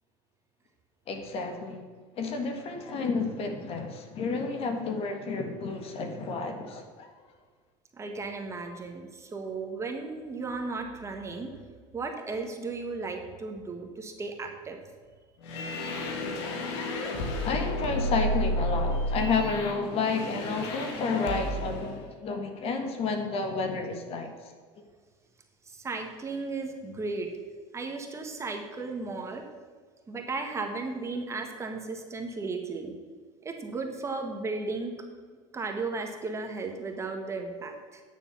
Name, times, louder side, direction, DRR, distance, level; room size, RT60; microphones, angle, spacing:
voice 1, 1.1-1.8 2.2-7.1 17.0-24.5, left 4 dB, 45° left, 5 dB, 1.7 m, -31 dB
voice 2, 7.9-11.5 11.9-14.8 25.6-27.3 27.7-29.4 30.1-32.9 33.4-34.9 35.5-38.0, right 3 dB, 20° right, 3 dB, 1.5 m, -35 dB
sound 1, 15.4-21.9, left 1 dB, 85° left, 2.0 m, -31 dB
10.0 x 6.9 x 7.2 m, 1.5 s
supercardioid pair, 125°, 14 cm